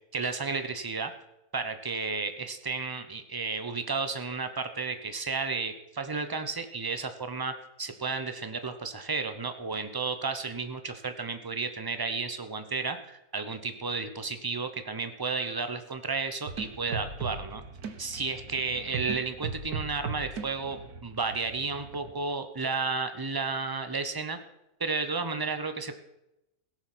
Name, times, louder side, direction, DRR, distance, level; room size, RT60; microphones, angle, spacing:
voice 1, 0.1-1.1 1.5-7.5 7.8-17.6 18.0-24.4 24.8-25.9, right 4 dB, 20° right, 8 dB, 0.8 m, -32 dB
sound 1, 16.5-22.1, right 5 dB, 80° right, 1.7 m, -39 dB
17.0 x 7.2 x 6.1 m, 0.88 s
omnidirectional pair, 1.6 m